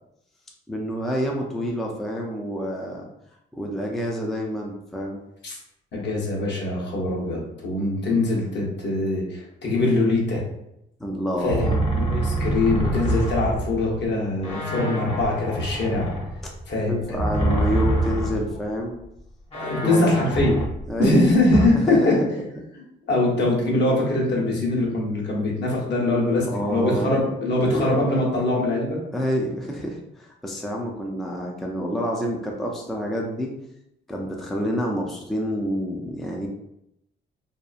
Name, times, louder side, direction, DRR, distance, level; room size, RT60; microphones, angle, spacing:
voice 1, 0.7-3.1 3.5-5.2 11.0-11.8 16.9-19.0 19.8-20.3 20.9-21.2 21.7-22.3 26.5-27.2 27.6-27.9 29.1-33.5 34.1-36.5, equal, ahead, -1 dB, 0.4 m, -28 dB
voice 2, 5.9-10.4 11.4-16.1 16.7-17.6 19.5-20.6 21.0-22.2 22.7-29.0, left 2 dB, 60° left, -3 dB, 1.0 m, -23 dB
sound 1, 11.5-14.1 14.4-18.7 19.0-19.1 19.5-21.7, right 2 dB, 30° left, 0.8 m, -26 dB
2.8 x 2.3 x 2.4 m, 0.82 s
cardioid pair, 90°, 20 cm